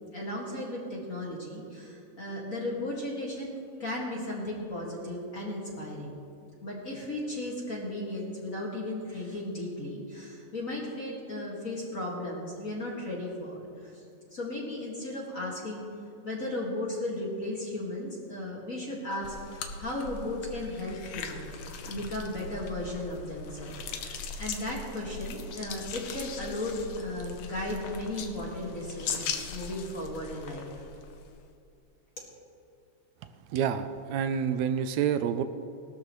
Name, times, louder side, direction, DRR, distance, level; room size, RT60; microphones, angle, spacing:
voice 1, 0.1-6.2 6.6-14.0 14.3-15.9 16.2-21.5 21.9-30.7 32.2-32.3, left 1 dB, 30° left, -4 dB, 2.0 m, -35 dB
sound 1, 19.2-31.4, left 5 dB, 65° left, 1.5 m, -40 dB
voice 2, 33.5-35.4, right 8 dB, 80° right, 10 dB, 1.8 m, -28 dB
18.0 x 12.5 x 3.1 m, 2.6 s
omnidirectional pair, 3.4 m